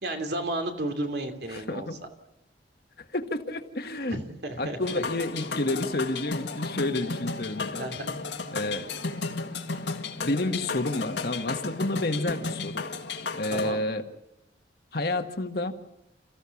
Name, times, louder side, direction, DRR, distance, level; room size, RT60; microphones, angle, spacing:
voice 1, 0.0-1.9 4.1-5.0 7.8-8.2 13.5-13.8, right 1 dB, 65° right, 5 dB, 2.9 m, -33 dB
voice 2, 1.5-2.0 3.1-4.2 4.6-7.9 8.5-8.9 10.2-12.8 13.3-14.0 14.9-15.7, left 2 dB, 55° left, 6 dB, 1.6 m, -30 dB
sound 1, 4.8-13.7, left 4 dB, 75° left, 1.9 m, -34 dB
29.5 x 15.0 x 7.2 m, 0.90 s
head